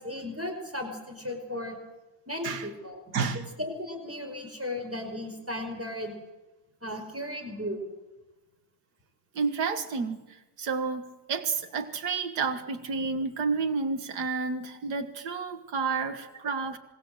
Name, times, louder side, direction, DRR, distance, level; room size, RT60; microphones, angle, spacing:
voice 1, 0.0-1.8 2.3-6.2 6.8-7.8, left 1 dB, 10° right, 4 dB, 5.2 m, -36 dB
voice 2, 3.1-3.4 9.4-16.8, right 5 dB, 80° right, 8 dB, 2.2 m, -30 dB
26.5 x 22.5 x 7.9 m, 1.1 s
omnidirectional pair, 1.7 m